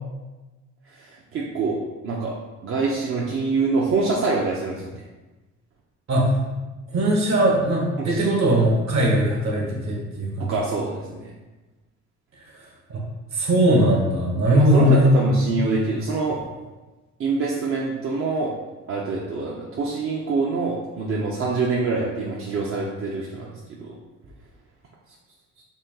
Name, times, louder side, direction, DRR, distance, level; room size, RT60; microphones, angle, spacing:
voice 1, 0.9-2.4 2.6-5.0 8.0-8.2 10.4-11.3 14.5-16.4 17.2-18.5 18.9-23.5 23.8-24.0, right 4 dB, 50° right, -3 dB, 0.6 m, -25 dB
voice 2, 6.9-10.5 12.9-13.0 13.3-15.2, equal, 65° right, -2 dB, 1.3 m, -19 dB
4.0 x 2.3 x 3.8 m, 1.2 s
cardioid pair, 90°, 30 cm